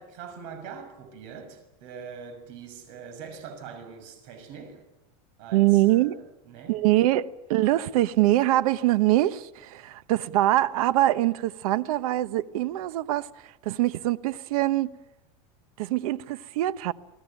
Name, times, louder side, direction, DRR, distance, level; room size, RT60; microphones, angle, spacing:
voice 1, 0.0-4.8 5.4-6.8, right 6 dB, 60° right, 6.5 m, -43 dB
voice 2, 5.5-6.2 6.7-14.9 15.8-16.9, right 15 dB, 75° right, 1.1 m, -24 dB
29.5 x 19.0 x 9.1 m
supercardioid pair, 160°, 18 cm